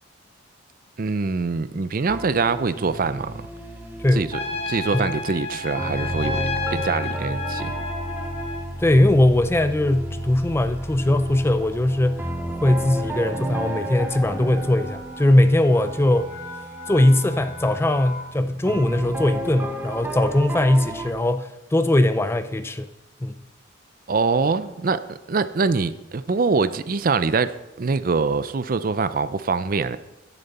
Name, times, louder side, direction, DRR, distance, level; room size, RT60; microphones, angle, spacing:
voice 1, 1.0-3.5 4.1-4.4 4.7-7.7 24.1-30.0, right 4 dB, 45° right, 0.5 m, -24 dB
sound 1, 2.1-21.1, right 1 dB, 10° right, 0.9 m, -33 dB
Trumpet, 4.3-8.7, left 3 dB, 30° left, 1.0 m, -31 dB
sound 2, 6.4-18.5, left 1 dB, 55° left, 2.9 m, -44 dB
voice 2, 8.8-12.3 12.6-16.3 16.9-22.9 23.2-23.3, left 1 dB, 10° left, 0.4 m, -20 dB
10.5 x 10.0 x 4.2 m
head